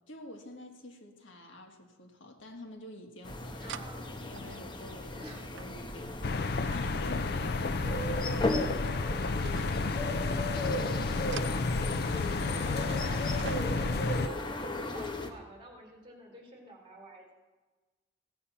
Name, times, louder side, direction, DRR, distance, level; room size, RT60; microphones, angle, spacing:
voice 1, 0.1-11.1 11.3-11.8, left 1 dB, 80° left, 3 dB, 1.7 m, -49 dB
sound 1, 2.7-2.8 3.7-3.9 4.4-8.9 9.2-10.0 11.0-12.3 12.8-13.0 13.4-14.1 15.1-15.2, right 5 dB, 65° right, 0.4 m, -46 dB
sound 2, 3.2-15.3, left 1 dB, 25° left, 1.0 m, -37 dB
voice 2, 3.6-4.0 5.2-5.4 8.0-8.1 12.4-13.4 13.7-17.4, equal, 25° right, 0 dB, 3.0 m, -47 dB
sound 3, 6.2-14.3, left 3 dB, 55° left, 0.5 m, -31 dB
16.0 x 8.3 x 5.7 m, 1.3 s
head